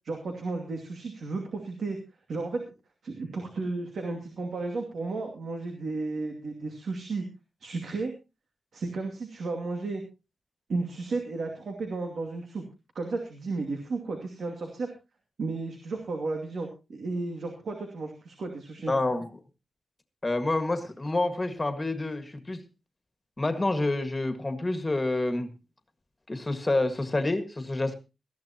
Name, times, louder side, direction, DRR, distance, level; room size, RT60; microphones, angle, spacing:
voice 1, 0.0-2.0 2.3-2.7 3.0-7.3 7.6-8.1 8.7-10.0 10.7-12.6 12.9-14.9 15.4-18.9, right 3 dB, 65° right, 3 dB, 2.4 m, -33 dB
voice 2, 18.9-19.3 20.2-22.6 23.4-25.5 26.3-27.9, left 2 dB, 20° left, 8 dB, 1.8 m, -28 dB
19.0 x 14.0 x 2.9 m, 0.29 s
wide cardioid pair, 140°, 0 cm